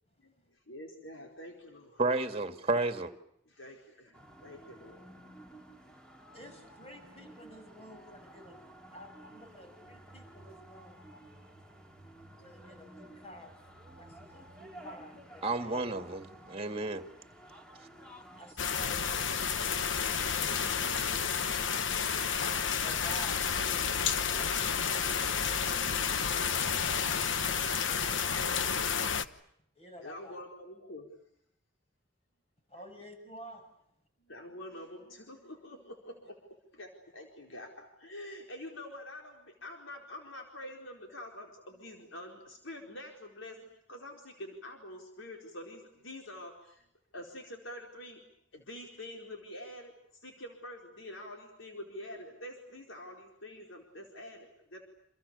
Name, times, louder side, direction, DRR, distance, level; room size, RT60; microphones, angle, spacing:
voice 1, 0.2-2.0 3.5-5.0 30.0-31.1 34.2-36.4 36.7-46.9 47.1-48.2 48.5-54.8, left 1 dB, 90° left, 4.6 m, -46 dB
voice 2, 2.0-3.1 15.4-17.1, right 3 dB, 30° right, 2.1 m, -31 dB
sound 1, 4.1-18.5, right 1 dB, 5° left, 2.8 m, -53 dB
voice 3, 6.3-11.1 12.4-16.1 16.4-16.6 18.2-19.5 27.8-29.4 29.7-30.4 32.7-33.6, equal, 30° left, 6.9 m, -52 dB
sound 2, 18.6-29.3, left 6 dB, 75° left, 1.1 m, -30 dB
29.0 x 28.0 x 7.0 m
head